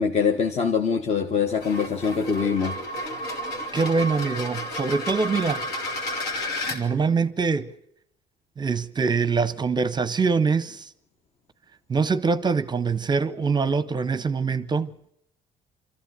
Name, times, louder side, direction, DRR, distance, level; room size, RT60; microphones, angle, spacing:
voice 1, 0.0-2.8, left 6 dB, 40° left, 1.2 m, -23 dB
sound 1, 1.5-6.8, left 1 dB, 75° left, 2.9 m, -32 dB
voice 2, 3.7-5.6 6.7-7.7 8.6-10.9 11.9-14.9, right 4 dB, 25° right, 0.7 m, -24 dB
24.5 x 14.0 x 8.1 m
cardioid pair, 110°, 17 cm